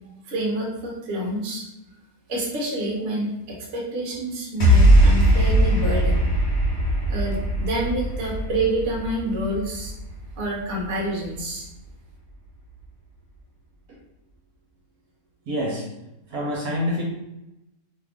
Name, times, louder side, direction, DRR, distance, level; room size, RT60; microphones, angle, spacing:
voice 1, 0.3-1.6 2.3-6.2 7.1-9.9 10.4-11.7, right 1 dB, 50° right, -3 dB, 1.0 m, -27 dB
sound 1, 4.6-11.0, right 1 dB, 45° left, 1.2 m, -20 dB
voice 2, 15.5-15.9 16.3-17.0, left 1 dB, 70° right, -3 dB, 1.2 m, -26 dB
3.0 x 2.4 x 3.5 m, 0.91 s
omnidirectional pair, 1.7 m